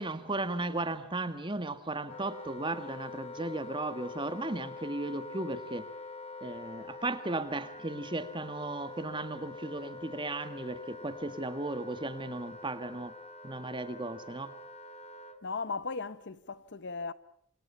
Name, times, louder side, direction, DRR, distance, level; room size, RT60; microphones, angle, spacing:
voice 1, 0.0-5.8 6.4-13.1 13.4-14.5, right 2 dB, 20° right, 1.7 m, -35 dB
Wind instrument woodwind instrument, 2.1-15.4, left 3 dB, 30° left, 1.5 m, -45 dB
voice 2, 15.4-17.1, left 4 dB, 55° left, 0.9 m, -37 dB
27.5 x 27.0 x 5.8 m
head